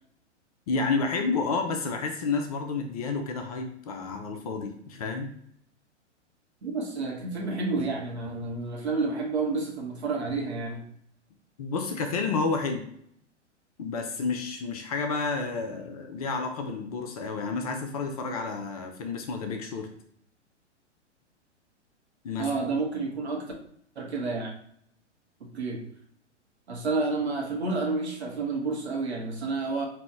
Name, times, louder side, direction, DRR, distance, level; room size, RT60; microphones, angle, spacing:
voice 1, 0.7-5.3 11.6-12.8 13.8-19.9 22.2-22.5, left 4 dB, 30° left, 4 dB, 0.5 m, -30 dB
voice 2, 6.6-10.9 22.4-23.5 23.9-24.5 25.5-25.8 26.7-29.9, right 3 dB, 65° right, 0 dB, 1.3 m, -30 dB
4.8 x 2.7 x 3.5 m, 0.67 s
figure-of-eight pair, 110°, 36 cm